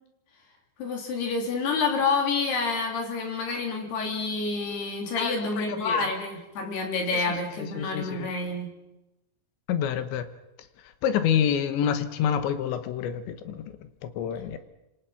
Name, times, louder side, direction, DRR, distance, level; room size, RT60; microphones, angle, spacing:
voice 1, 0.8-8.7, left 4 dB, 55° left, 2 dB, 5.2 m, -28 dB
voice 2, 5.2-6.1 7.1-8.3 9.7-10.3 10.8-14.6, left 8 dB, 70° left, 10 dB, 3.1 m, -28 dB
27.5 x 27.0 x 5.8 m, 0.97 s
omnidirectional pair, 5.9 m